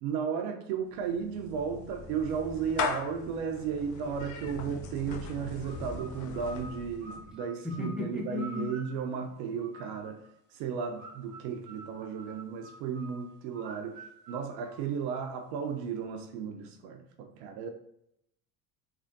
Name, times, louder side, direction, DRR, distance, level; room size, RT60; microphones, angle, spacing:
voice 1, 0.0-10.3 10.5-17.7, right 7 dB, 60° right, 4 dB, 0.6 m, -34 dB
Clapping / Meow, 0.9-7.3, left 6 dB, 40° left, 0.5 m, -39 dB
sound 1, 5.6-10.3 11.0-15.4, right 2 dB, 25° right, 1.0 m, -50 dB
voice 2, 7.6-8.7, left 3 dB, ahead, -2 dB, 0.8 m, -35 dB
3.3 x 2.4 x 2.5 m, 0.76 s
hypercardioid pair, 65°, 47 cm